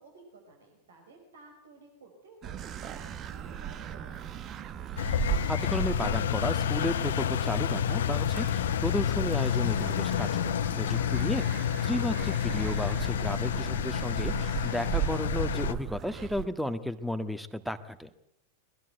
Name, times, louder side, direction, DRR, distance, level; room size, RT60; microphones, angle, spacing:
voice 1, 0.0-4.3 10.8-11.3, right 3 dB, 65° right, 3 dB, 5.2 m, -54 dB
sound 1, 2.4-16.5, right 11 dB, 30° right, 1.2 m, -37 dB
Engine, 5.0-15.7, left 10 dB, 60° left, 0.9 m, -29 dB
voice 2, 5.5-11.4 11.8-18.1, equal, ahead, 11 dB, 1.6 m, -33 dB
22.5 x 20.5 x 8.1 m, 0.80 s
figure-of-eight pair, 90°, 0 cm